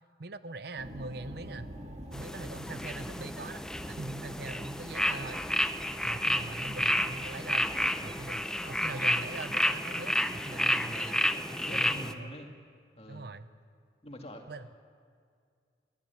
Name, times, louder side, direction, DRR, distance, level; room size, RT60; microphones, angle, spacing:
voice 1, 0.2-1.7 2.1-5.4 6.0-7.7 8.0-11.3 11.7-12.3 13.1-13.5 14.5-14.7, right 2 dB, 55° right, 13 dB, 0.7 m, -42 dB
sound 1, 0.8-8.8, equal, 35° right, 2.2 m, -47 dB
sound 2, 2.1-12.1, left 1 dB, 5° left, 0.6 m, -31 dB
voice 2, 11.3-12.5 13.0-13.3 14.0-14.5, equal, 30° left, 3 dB, 2.1 m, -45 dB
22.5 x 14.0 x 9.4 m, 2.2 s
head